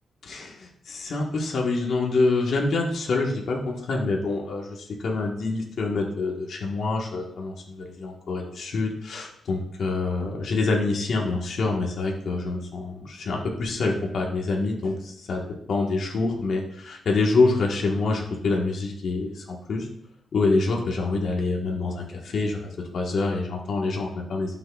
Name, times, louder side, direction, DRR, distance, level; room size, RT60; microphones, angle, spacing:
voice 1, 0.2-15.4 15.7-19.9 20.3-24.6, left 3 dB, 55° left, -1 dB, 1.3 m, -26 dB
11.5 x 6.1 x 2.3 m, 0.73 s
wide cardioid pair, 160°, 0 cm